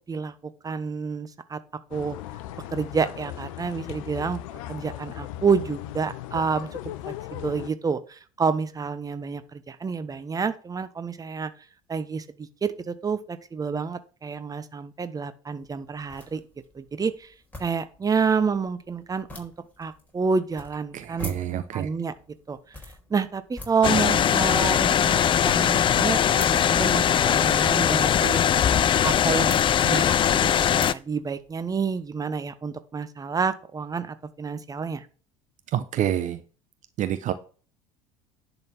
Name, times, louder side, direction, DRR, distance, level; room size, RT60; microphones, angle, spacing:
voice 1, 0.1-1.6 1.9-2.2 2.7-4.4 4.7-6.8 7.0-11.5 11.9-16.4 16.7-17.3 17.6-19.5 19.8-21.3 21.7-22.1 22.5-22.6 23.1-28.4 29.0-35.1, right 5 dB, 20° right, 11 dB, 1.0 m, -29 dB
sound 1, 1.9-7.7, left 13 dB, 65° left, 0.7 m, -37 dB
sound 2, 15.6-32.1, left 2 dB, 10° left, 4.2 m, -47 dB
voice 2, 20.9-21.9 35.7-36.4 37.0-37.3, right 11 dB, 45° right, 11 dB, 0.9 m, -27 dB
sound 3, 23.8-30.9, left 9 dB, 30° left, 0.4 m, -21 dB
10.5 x 4.1 x 7.3 m, 0.39 s
figure-of-eight pair, 65°, 18 cm